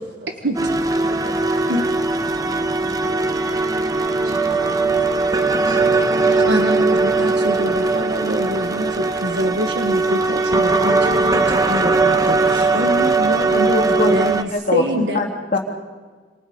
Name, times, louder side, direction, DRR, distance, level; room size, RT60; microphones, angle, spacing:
sound 1, 0.5-14.4, right 3 dB, 20° right, 1.2 m, -19 dB
voice 1, 2.4-3.2 3.6-4.5 5.2-5.8 6.3-6.5, right 1 dB, 50° right, -1 dB, 7.2 m, -41 dB
voice 2, 6.5-13.7 14.1-15.2, equal, 70° right, 5 dB, 1.7 m, -25 dB
voice 3, 13.5-15.6, left 2 dB, 45° left, 2 dB, 2.9 m, -22 dB
27.5 x 27.0 x 5.5 m, 1.5 s
head